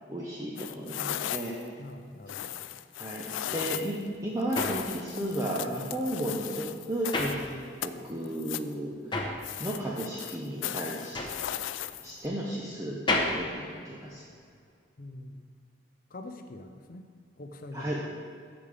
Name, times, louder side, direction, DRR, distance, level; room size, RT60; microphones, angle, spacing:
voice 1, 0.1-1.7 3.0-8.9 9.6-11.2 12.0-14.2 17.7-18.0, right 1 dB, 15° right, -5 dB, 0.8 m, -34 dB
sound 1, 0.6-1.7 2.3-4.0 4.5-7.5 7.8-8.7 9.4-12.3, left 11 dB, 80° left, 0.3 m, -36 dB
voice 2, 1.8-2.7 3.5-3.6 15.0-15.5 16.1-17.1 17.4-17.9, left 2 dB, 45° left, 6 dB, 0.6 m, -44 dB
sound 2, 3.8-8.1 8.4-14.6, left 2 dB, 25° left, 0.9 m, -34 dB
15.0 x 5.2 x 3.4 m, 2.2 s
head